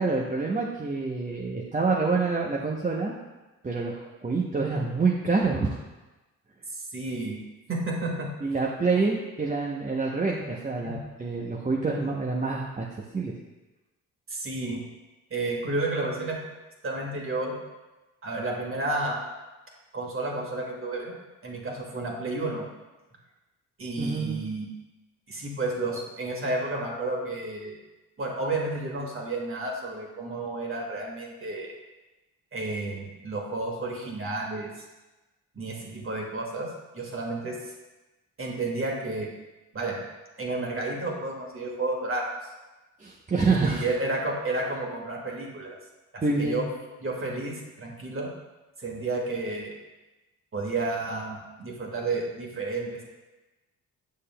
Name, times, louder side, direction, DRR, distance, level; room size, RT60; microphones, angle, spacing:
voice 1, 0.0-3.1 3.6-5.8 8.4-12.9 13.1-13.3 24.0-24.4 43.0-43.9 46.2-46.6, right 4 dB, 25° right, -2 dB, 0.8 m, -27 dB
voice 2, 6.7-7.4 7.7-8.3 10.8-11.0 14.3-14.8 15.3-16.4 16.8-17.5 18.2-19.2 19.9-21.1 21.4-22.6 23.8-24.7 25.3-27.8 28.2-31.7 32.5-34.7 35.5-36.7 36.9-37.7 38.4-39.3 39.7-40.0 40.4-42.3 43.5-45.7 46.1-46.7 47.0-48.3 48.8-49.8 50.5-53.1, right 2 dB, 40° right, -1 dB, 1.8 m, -31 dB
7.5 x 6.5 x 2.2 m, 1.1 s
cardioid pair, 75°, 34 cm